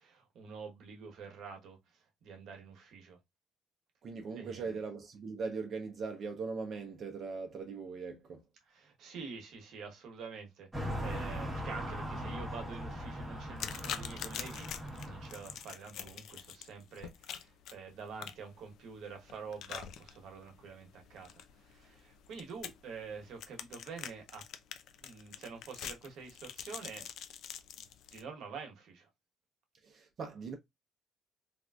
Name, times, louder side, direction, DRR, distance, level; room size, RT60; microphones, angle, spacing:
voice 1, 0.0-3.2 4.3-4.8 8.7-24.4 25.0-27.1 27.8-29.1, right 5 dB, 70° right, 1.0 m, -47 dB
voice 2, 4.0-8.4 29.8-30.5, right 4 dB, 50° right, 0.6 m, -40 dB
sound 1, 10.7-15.6, equal, 10° right, 1.1 m, -40 dB
sound 2, 13.6-28.2, left 9 dB, 70° left, 0.4 m, -46 dB
3.4 x 2.5 x 2.3 m
cardioid pair, 120°, 0 cm